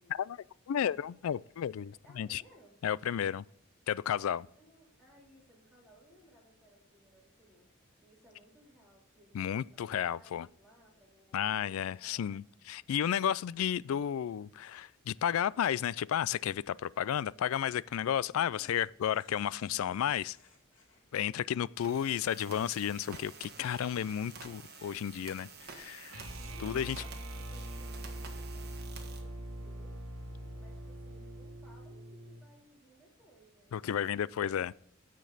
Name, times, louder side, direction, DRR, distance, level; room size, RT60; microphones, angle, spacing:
voice 1, 0.1-2.4 2.8-3.4 3.9-4.5 9.3-10.5 11.3-20.4 21.1-26.3 26.6-27.0 33.7-34.7, left 9 dB, 80° left, 0.3 m, -33 dB
voice 2, 1.8-2.8 4.0-12.4 18.3-18.8 26.4-30.0 30.3-34.7, equal, ahead, 3.5 m, -62 dB
Camera, 19.0-21.0 22.4-24.9, left 4 dB, 60° left, 2.5 m, -63 dB
sound 1, 21.8-29.2, right 5 dB, 50° right, 1.7 m, -50 dB
sound 2, 26.1-32.5, right 1 dB, 90° right, 1.7 m, -43 dB
14.5 x 5.2 x 4.0 m
head